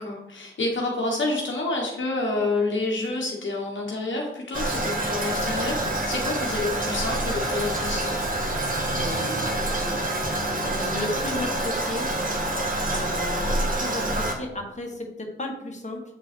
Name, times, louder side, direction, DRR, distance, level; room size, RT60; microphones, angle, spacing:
voice 1, 0.0-8.2, left 2 dB, 70° left, -1 dB, 1.2 m, -28 dB
Toilet flush, 4.5-14.3, right 1 dB, 45° right, 1.3 m, -27 dB
voice 2, 9.0-12.1 12.9-16.0, left 2 dB, 35° left, 0 dB, 1.5 m, -34 dB
7.8 x 3.7 x 3.4 m, 0.86 s
cardioid pair, 50°, 21 cm